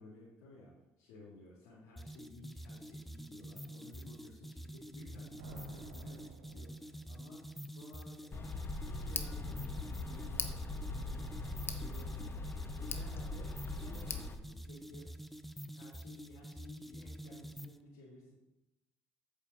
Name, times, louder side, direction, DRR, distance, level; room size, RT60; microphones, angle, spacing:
voice 1, 0.0-11.3 11.6-15.1 15.7-18.3, left 2 dB, 80° left, -6 dB, 2.5 m, -55 dB
sound 1, 2.0-17.8, right 1 dB, ahead, 0.7 m, -48 dB
Thunder, 4.8-7.4, right 4 dB, 85° right, 1.1 m, -54 dB
Tick, 8.3-14.4, left 3 dB, 30° left, 1.2 m, -40 dB
8.6 x 5.1 x 7.0 m, 0.94 s
hypercardioid pair, 60°, 7 cm